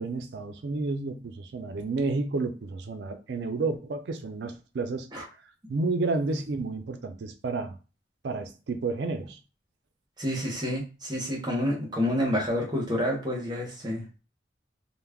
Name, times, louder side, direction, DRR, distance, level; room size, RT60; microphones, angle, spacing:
voice 1, 0.0-5.1 5.7-7.8 8.2-9.4, right 3 dB, 70° right, 0.4 m, -31 dB
voice 2, 10.2-14.0, equal, 25° right, 0.7 m, -28 dB
2.3 x 2.1 x 3.4 m
head